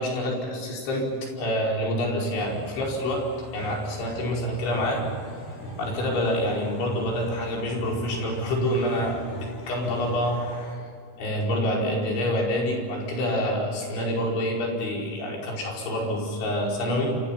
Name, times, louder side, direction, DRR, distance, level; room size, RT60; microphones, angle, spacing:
voice 1, 0.0-5.1 5.8-10.5 11.2-17.2, equal, 75° left, -2 dB, 7.3 m, -27 dB
sound 1, 2.3-10.7, equal, 55° left, 8.9 m, -40 dB
29.0 x 28.0 x 5.9 m, 2.1 s
omnidirectional pair, 5.4 m